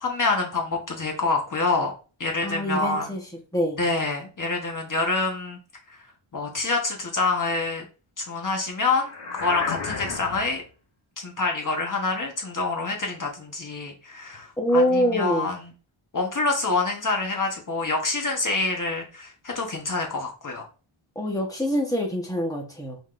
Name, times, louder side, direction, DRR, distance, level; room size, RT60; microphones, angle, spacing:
voice 1, 0.0-1.9 2.2-3.1 3.8-5.6 5.9-6.0 6.3-7.9 8.2-10.6 11.2-15.7 16.1-20.6, left 3 dB, 40° left, 2 dB, 1.2 m, -26 dB
voice 2, 2.4-3.2 3.5-3.8 14.6-15.5 21.1-23.0, equal, 5° left, 0 dB, 1.1 m, -24 dB
sound 1, 9.0-10.6, left 4 dB, 55° left, 1.9 m, -32 dB
5.0 x 3.8 x 2.5 m, 0.35 s
wide cardioid pair, 165°, 49 cm